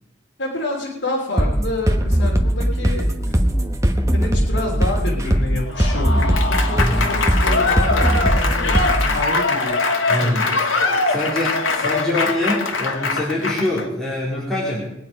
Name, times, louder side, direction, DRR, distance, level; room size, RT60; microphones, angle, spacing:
voice 1, 0.4-3.3 4.1-8.7 9.1-9.8 10.2-10.6, left 2 dB, 65° left, -4 dB, 3.2 m, -28 dB
sound 1, 1.4-9.2, equal, 15° right, 1.2 m, -19 dB
Applause / Crowd, 5.7-13.8, left 3 dB, 85° left, 1.6 m, -22 dB
voice 2, 6.8-7.1 10.1-10.4 11.1-14.9, left 1 dB, 5° left, -7 dB, 3.8 m, -24 dB
21.5 x 9.2 x 5.2 m, 0.82 s
head